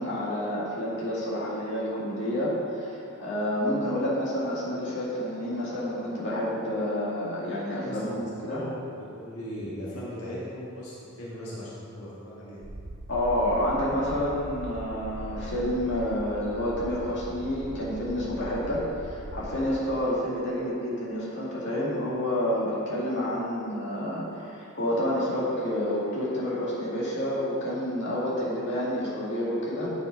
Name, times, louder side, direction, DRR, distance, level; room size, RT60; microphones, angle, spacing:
voice 1, 0.0-8.6 13.1-29.9, left 1 dB, 55° left, -6 dB, 2.1 m, -29 dB
voice 2, 7.8-12.6, equal, 80° left, -8 dB, 1.6 m, -38 dB
sound 1, 12.6-19.7, right 1 dB, 35° right, 0.6 m, -40 dB
8.8 x 5.3 x 5.1 m, 2.6 s
head